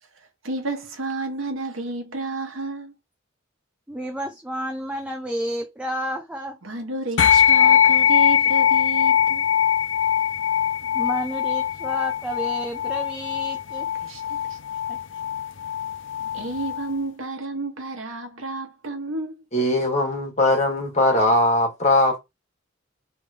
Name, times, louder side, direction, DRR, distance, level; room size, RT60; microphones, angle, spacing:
voice 1, 0.1-2.9 6.6-9.5 10.8-11.0 14.0-14.6 16.3-19.4, right 2 dB, 75° right, 1.2 m, -31 dB
voice 2, 3.9-6.6 10.9-13.9 14.9-15.0, equal, 5° right, 0.6 m, -31 dB
sound 1, 7.2-16.9, left 9 dB, 65° left, 0.5 m, -21 dB
voice 3, 19.5-22.2, left 1 dB, 35° left, 1.7 m, -20 dB
3.5 x 3.1 x 4.7 m
head